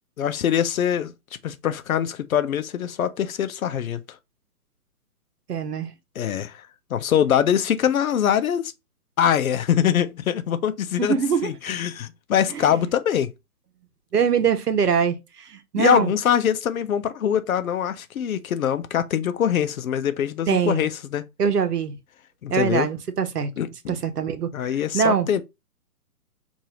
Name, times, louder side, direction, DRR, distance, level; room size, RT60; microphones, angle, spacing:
voice 1, 0.2-1.1 1.4-4.0 6.2-8.7 9.2-11.1 11.4-13.3 15.8-21.2 22.4-22.9 23.6-24.0 24.5-25.4, left 9 dB, 65° left, 0.7 m, -23 dB
voice 2, 5.5-5.9 11.0-11.5 12.5-12.8 14.1-16.1 20.5-20.9 21.4-22.0 22.5-23.5 23.9-24.5 24.9-25.3, right 7 dB, 80° right, 1.0 m, -23 dB
5.0 x 2.7 x 2.8 m
hypercardioid pair, 145°, 46 cm